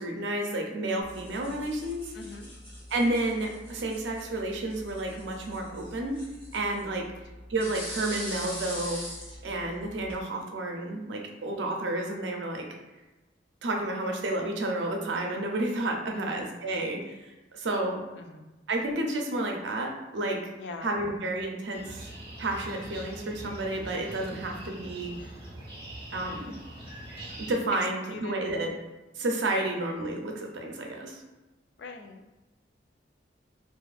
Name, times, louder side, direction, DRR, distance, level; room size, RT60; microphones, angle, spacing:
voice 1, 0.0-2.1 2.9-6.2 6.5-7.1 7.5-9.0 9.4-12.7 13.6-18.0 18.7-20.4 20.8-22.1 22.4-25.1 26.1-26.6 27.4-28.7 29.2-31.2, right 2 dB, 80° right, 2 dB, 0.5 m, -31 dB
sound 1, 1.0-10.2, equal, 25° left, 0.7 m, -43 dB
voice 2, 2.1-2.5 6.9-7.1 16.1-16.4 18.1-18.5 20.6-21.0 28.1-28.4 29.6-29.8 31.8-32.4, left 3 dB, 70° left, 5 dB, 0.3 m, -43 dB
sound 2, 21.7-27.5, right 1 dB, 25° right, 0.6 m, -43 dB
2.5 x 2.4 x 2.3 m, 1.1 s
head